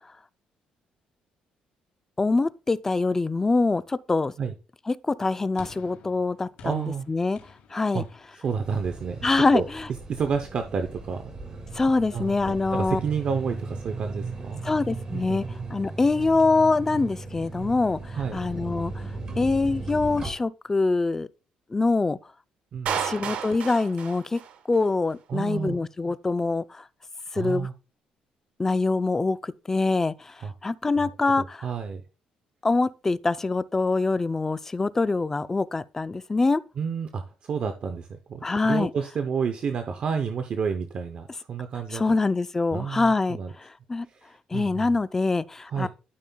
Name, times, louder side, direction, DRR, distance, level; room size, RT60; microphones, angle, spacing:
voice 1, 2.2-4.3 4.9-7.4 7.7-8.0 9.2-9.9 11.7-13.0 14.6-15.4 15.7-18.9 19.4-21.3 21.7-22.2 22.9-24.4 24.7-26.8 27.3-27.7 28.6-30.3 30.6-31.7 32.6-36.6 38.4-38.9 41.9-44.1 44.5-45.9, left 3 dB, 15° left, 0.4 m, -24 dB
sound 1, 5.6-10.0, left 6 dB, 85° left, 2.6 m, -51 dB
voice 2, 6.6-7.1 7.9-8.0 8.4-9.3 9.5-9.7 10.1-11.3 12.1-14.6 15.1-15.5 18.1-18.4 22.7-23.1 25.3-25.8 27.3-27.7 30.4-30.5 31.0-31.1 31.4-32.0 36.8-42.2 42.7-43.5 44.1-44.9 45.7-45.9, right 6 dB, 45° right, 0.6 m, -30 dB
sound 2, 8.6-20.3, right 3 dB, 30° right, 1.6 m, -37 dB
Clapping, 22.9-24.9, right 8 dB, 70° right, 1.1 m, -32 dB
12.5 x 5.4 x 2.2 m
cardioid pair, 130°, 2 cm